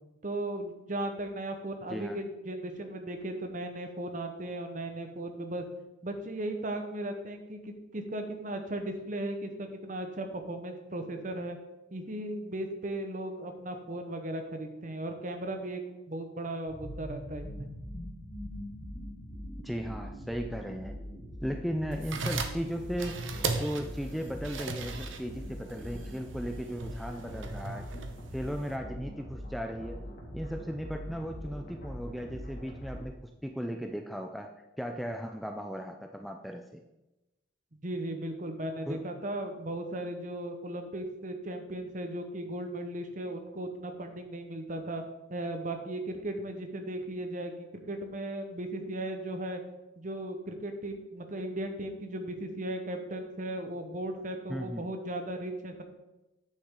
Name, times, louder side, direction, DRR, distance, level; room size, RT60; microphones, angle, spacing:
voice 1, 0.2-5.6 6.0-11.6 11.9-17.7 37.7-45.0 45.3-49.6 50.0-55.8, right 1 dB, 40° right, 5 dB, 1.0 m, -36 dB
sound 1, 16.7-33.0, equal, 45° left, 1.7 m, -42 dB
voice 2, 19.6-21.0 21.4-23.2 23.5-27.9 28.3-30.0 30.3-33.1 33.4-34.5 34.8-36.8 38.9-39.0 54.5-54.8, equal, ahead, 4 dB, 0.4 m, -36 dB
sound 2, 21.9-28.8, right 3 dB, 75° right, 0.9 m, -38 dB
9.4 x 7.1 x 3.7 m, 0.99 s
head